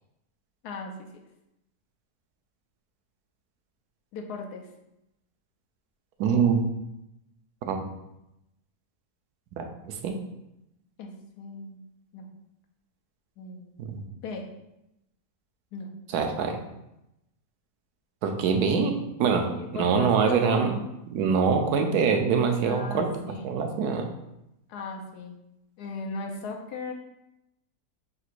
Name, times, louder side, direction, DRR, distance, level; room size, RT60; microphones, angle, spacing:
voice 1, 0.6-1.1 4.1-4.7 11.0-11.1 11.4-11.8 12.1-12.3 13.4-13.8 14.2-14.5 15.7-15.9 19.5-20.7 22.6-23.5 24.7-25.4 25.8-26.9, left 4 dB, 90° left, 1 dB, 1.2 m, -37 dB
voice 2, 6.2-6.7 7.7-7.8 9.6-10.2 13.8-14.0 16.1-16.6 18.2-18.9 19.2-20.8 21.1-23.1 23.4-24.0, right 6 dB, 85° right, 4 dB, 1.1 m, -24 dB
4.5 x 3.8 x 2.5 m, 0.87 s
omnidirectional pair, 1.6 m